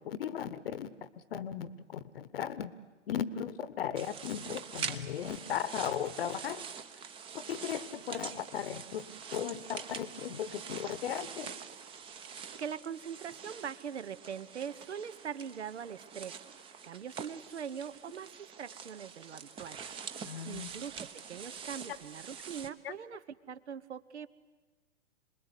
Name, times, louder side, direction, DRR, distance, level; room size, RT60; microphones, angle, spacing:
voice 1, 0.0-2.7 3.1-6.7 7.3-11.5 20.2-20.7 22.8-22.9, left 9 dB, 50° left, 16 dB, 1.1 m, -37 dB
sound 1, 4.0-22.7, right 6 dB, 15° right, 0.9 m, -45 dB
voice 2, 12.3-16.3 16.8-19.8 20.4-23.2 23.5-24.3, right 7 dB, 65° right, 16 dB, 1.2 m, -42 dB
27.0 x 20.5 x 8.3 m, 1.3 s
figure-of-eight pair, 120°, 36 cm